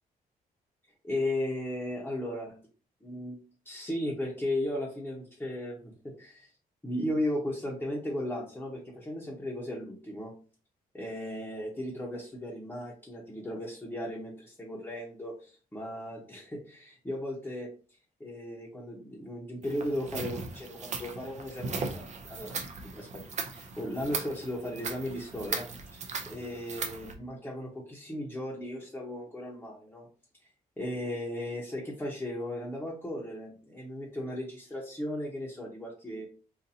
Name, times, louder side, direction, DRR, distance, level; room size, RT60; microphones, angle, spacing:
voice 1, 1.0-2.6 3.0-3.4 3.6-6.5 6.8-10.4 10.9-17.7 18.2-30.1 30.8-36.3, left 1 dB, 10° left, -4 dB, 0.9 m, -36 dB
sound 1, 19.6-27.1, right 4 dB, 50° right, 0.6 m, -38 dB
4.0 x 2.5 x 2.7 m, 0.38 s
cardioid pair, 125°, 15 cm